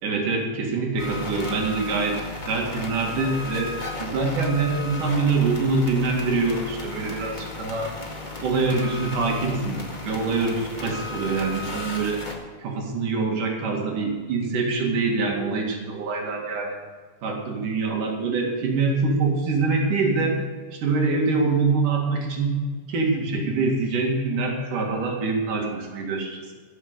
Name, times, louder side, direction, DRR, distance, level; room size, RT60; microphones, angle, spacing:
voice 1, 0.0-3.7 4.0-8.0 8.4-12.2 12.6-16.8 17.2-20.4 20.7-22.6 22.9-26.5, right 3 dB, 75° right, 0 dB, 3.7 m, -25 dB
sound 1, 1.0-12.3, left 3 dB, 20° left, 1.5 m, -35 dB
18.0 x 7.1 x 6.7 m, 1.5 s
omnidirectional pair, 3.8 m